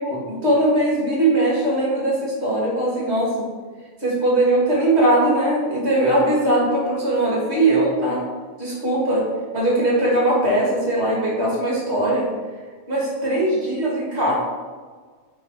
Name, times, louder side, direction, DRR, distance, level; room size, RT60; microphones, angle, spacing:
voice 1, 0.0-3.5 4.0-8.2 8.6-9.2 9.5-12.3 12.9-14.3, right 1 dB, 30° right, -5 dB, 1.3 m, -20 dB
5.5 x 4.4 x 4.4 m, 1.5 s
omnidirectional pair, 3.6 m